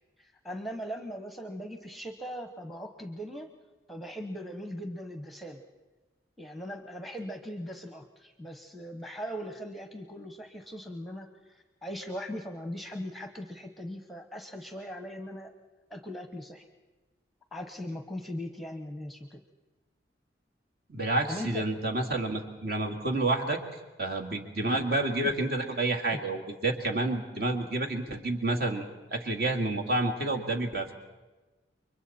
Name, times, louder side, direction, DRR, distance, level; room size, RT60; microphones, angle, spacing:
voice 1, 0.2-3.5 3.9-5.6 6.4-15.5 15.9-16.6 17.5-19.4 21.3-21.6 25.2-25.3, equal, ahead, 6 dB, 1.0 m, -39 dB
voice 2, 20.9-23.6 24.0-28.9 29.1-30.9, right 2 dB, 55° right, 2 dB, 2.2 m, -29 dB
29.5 x 23.5 x 4.3 m, 1.2 s
head